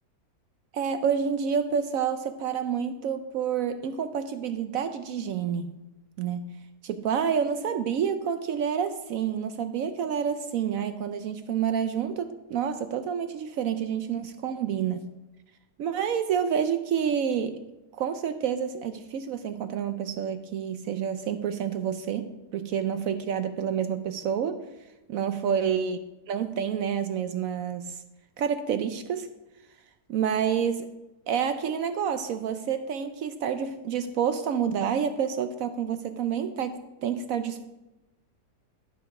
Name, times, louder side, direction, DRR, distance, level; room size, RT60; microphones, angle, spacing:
voice 1, 0.7-5.7 6.2-6.6 6.8-15.1 15.8-17.6 17.9-24.6 25.1-26.0 26.3-28.0 28.4-29.3 30.1-30.9 31.3-37.6, right 7 dB, 70° right, 10 dB, 0.8 m, -28 dB
12.0 x 5.9 x 4.8 m, 1.0 s
omnidirectional pair, 1.8 m